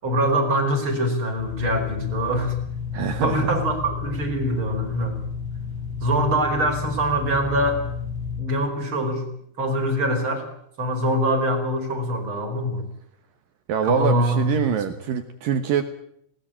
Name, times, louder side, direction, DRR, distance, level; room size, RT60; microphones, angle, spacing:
voice 1, 0.0-2.5 3.2-5.2 6.0-7.8 8.4-9.2 9.6-10.5 10.8-12.9 13.8-14.8, equal, 25° right, 3 dB, 5.0 m, -23 dB
sound 1, 1.4-8.4, left 6 dB, 80° left, 8.1 m, -31 dB
voice 2, 2.9-3.5 13.7-15.8, right 8 dB, 70° right, 8 dB, 2.2 m, -24 dB
20.0 x 18.5 x 8.8 m, 0.69 s
omnidirectional pair, 5.5 m